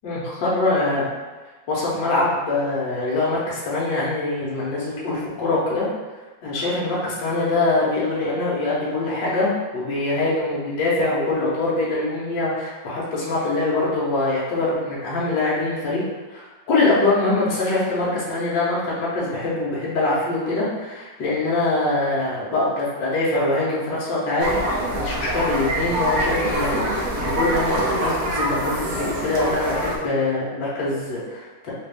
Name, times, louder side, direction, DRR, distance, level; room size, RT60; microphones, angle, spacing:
voice 1, 0.0-1.1 1.7-5.9 6.4-16.0 16.3-24.6 24.9-31.7, left 2 dB, 70° left, -7 dB, 1.6 m, -23 dB
sound 1, 24.4-30.0, right 1 dB, 70° right, 0.8 m, -25 dB
4.1 x 2.5 x 3.4 m, 1.3 s
omnidirectional pair, 2.1 m